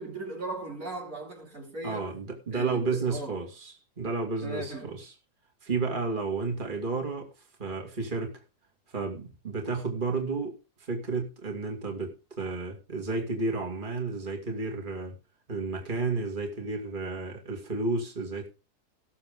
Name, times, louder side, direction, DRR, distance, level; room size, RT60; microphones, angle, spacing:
voice 1, 0.0-2.1 2.5-3.4 4.4-5.0, right 2 dB, 55° right, 3.3 m, -38 dB
voice 2, 1.8-5.1 5.6-7.3 7.6-8.4 8.9-15.2 15.5-18.5, right 3 dB, 30° right, 2.8 m, -32 dB
19.0 x 7.3 x 3.8 m
omnidirectional pair, 1.7 m